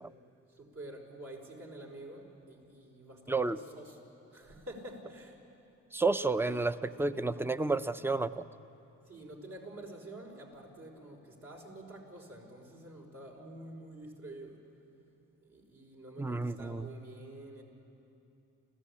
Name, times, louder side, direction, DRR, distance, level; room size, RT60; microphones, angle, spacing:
voice 1, 0.6-5.4 6.3-6.6 7.1-7.3 9.1-14.6 15.4-17.6, right 1 dB, 60° right, 0 dB, 5.1 m, -48 dB
voice 2, 5.9-8.4 16.2-16.9, right 3 dB, 10° right, 13 dB, 0.6 m, -31 dB
29.0 x 15.5 x 8.6 m, 2.9 s
cardioid pair, 90°, 30 cm